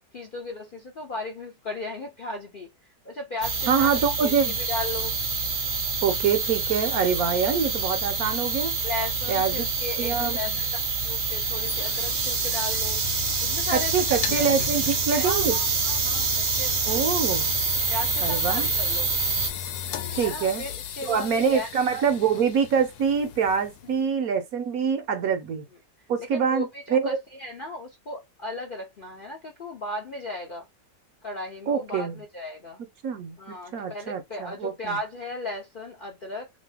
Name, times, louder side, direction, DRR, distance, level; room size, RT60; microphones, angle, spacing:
voice 1, 0.1-2.7 3.0-3.9 4.2-5.1 8.8-10.7 11.0-13.0 13.4-14.7 15.2-17.2 17.9-19.1 20.2-21.7 26.3-30.7 31.2-32.8 33.4-36.5, left 2 dB, 55° left, 0.6 m, -36 dB
sound 1, 3.4-19.5, right 5 dB, 40° right, 0.8 m, -27 dB
voice 2, 3.7-4.6 6.0-8.7 9.3-9.7 10.0-10.6 13.7-15.6 16.9-17.5 18.2-18.7 20.1-20.6 21.1-25.7 26.1-27.2 31.7-32.1 33.0-35.0, right 6 dB, 65° right, 1.0 m, -25 dB
sound 2, 11.2-24.0, left 9 dB, 70° left, 1.1 m, -35 dB
sound 3, 11.4-18.2, right 10 dB, 90° right, 1.2 m, -32 dB
2.9 x 2.7 x 3.3 m
omnidirectional pair, 1.8 m